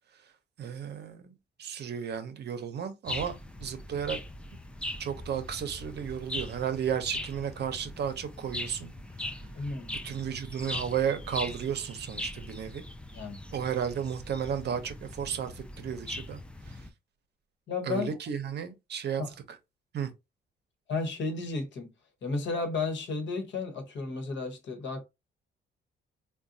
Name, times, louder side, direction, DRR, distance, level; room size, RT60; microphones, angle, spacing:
voice 1, 0.6-1.3 1.6-3.3 3.6-4.2 5.0-8.9 10.0-12.8 13.5-16.4 17.8-19.2 19.9-20.1, right 8 dB, 60° right, 0.7 m, -33 dB
sound 1, 3.1-16.9, left 1 dB, 5° left, 0.4 m, -40 dB
voice 2, 9.5-10.0 13.1-13.4 17.7-18.2 19.2-19.3 20.9-21.9 22.2-25.0, left 3 dB, 65° left, 1.1 m, -33 dB
3.8 x 2.2 x 2.6 m
cardioid pair, 90°, 20 cm